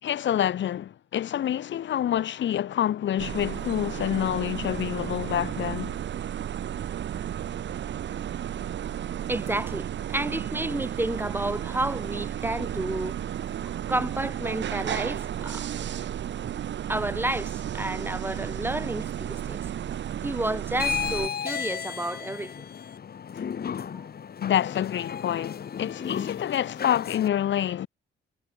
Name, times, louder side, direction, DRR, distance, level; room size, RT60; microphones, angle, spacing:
voice 1, 0.0-5.9 23.3-23.4 24.4-27.9, left 11 dB, 70° left, 3.3 m, -27 dB
sound 1, 3.2-21.3, right 10 dB, 65° right, 5.4 m, -33 dB
voice 2, 9.3-13.2 13.9-15.7 16.9-19.6 20.2-22.6 23.9-24.1, right 1 dB, 10° right, 7.6 m, -31 dB
sound 2, 20.7-27.3, left 7 dB, 50° left, 5.8 m, -33 dB
cardioid pair, 90°, 20 cm